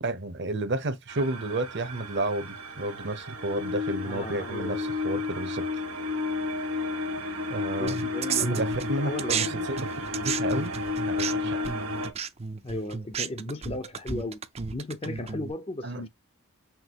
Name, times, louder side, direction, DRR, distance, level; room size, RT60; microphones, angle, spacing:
voice 1, 0.0-5.7 7.5-8.1 8.4-10.8 11.1-11.6 15.8-16.0, right 2 dB, 50° right, 0.8 m, -31 dB
sound 1, 1.1-12.1, left 3 dB, 70° right, 1.5 m, -32 dB
voice 2, 4.0-5.2 7.2-7.3 7.8-8.6 9.0-9.8 12.6-14.4 14.7-16.1, left 2 dB, 25° left, 0.5 m, -36 dB
sound 2, 7.9-9.5 9.8-15.5, right 6 dB, 30° right, 0.4 m, -33 dB
5.9 x 2.8 x 2.9 m
head